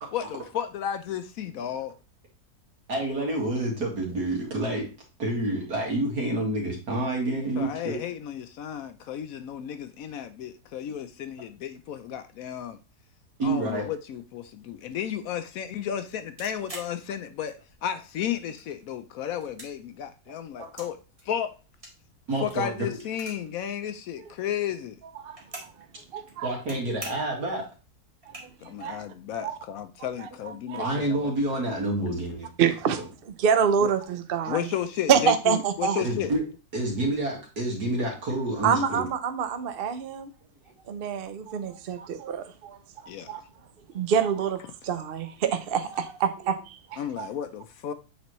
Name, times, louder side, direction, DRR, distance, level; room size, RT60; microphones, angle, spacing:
voice 1, 0.1-1.9 7.6-12.8 13.4-21.0 21.2-21.5 22.4-25.0 28.6-31.3 33.8-33.9 34.5-36.3 43.1-43.4 47.0-47.9, left 9 dB, 70° left, 0.9 m, -33 dB
voice 2, 2.9-4.9 5.2-8.0 13.4-13.9 20.6-20.7 22.3-22.9 26.4-27.7 30.8-32.5 36.0-36.4 36.7-39.0 43.3-43.4, right 1 dB, 80° right, 2.5 m, -28 dB
sound 1, 16.4-17.8 18.2-18.9 19.3-20.9 21.2-23.6 23.9-24.0 24.1-25.8 26.2-26.8 27.0-27.4 27.8-27.9 28.2-28.8, right 1 dB, 20° right, 1.7 m, -44 dB
voice 3, 25.2-25.7 26.1-26.5 28.4-28.5 28.8-29.0 29.4-29.6 30.7-31.0 32.6-34.7 35.1-36.0 38.6-40.3 40.9-42.8 43.3-43.4 43.9-47.3, right 7 dB, 65° right, 0.5 m, -26 dB
8.3 x 4.1 x 3.0 m
omnidirectional pair, 1.7 m